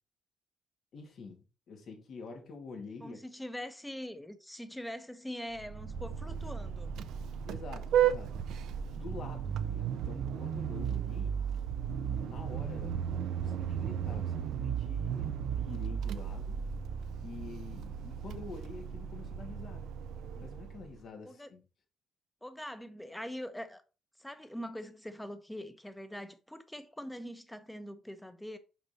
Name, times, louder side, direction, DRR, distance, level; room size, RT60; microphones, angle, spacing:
voice 1, 0.9-3.2 7.5-8.3 8.9-11.4 11.9-16.6 17.2-19.9 20.4-21.6, left 4 dB, 65° left, 2.4 m, -47 dB
voice 2, 3.0-6.9 21.2-21.5 22.4-23.8 24.2-28.6, equal, 5° left, 1.0 m, -43 dB
Vehicle horn car horn honking, 5.6-20.9, right 8 dB, 80° right, 0.6 m, -35 dB
5.7 x 5.3 x 4.4 m
cardioid pair, 90°, 0 cm